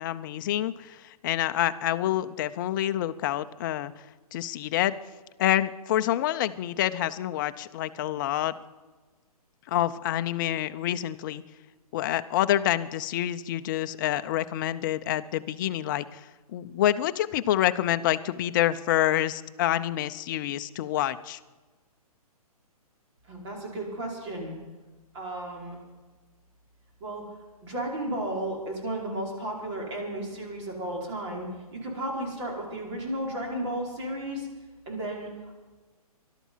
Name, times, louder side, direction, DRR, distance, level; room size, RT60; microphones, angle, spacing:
voice 1, 0.0-3.9 4.3-5.0 5.4-8.5 9.7-11.4 11.9-21.4, left 12 dB, 30° left, 11 dB, 0.6 m, -27 dB
voice 2, 23.3-24.6 25.1-25.8 27.0-27.2 27.6-31.5 31.7-34.5 34.9-35.3, right 1 dB, 50° right, -1 dB, 5.2 m, -33 dB
20.0 x 12.5 x 5.6 m, 1.3 s
hypercardioid pair, 150°, 19 cm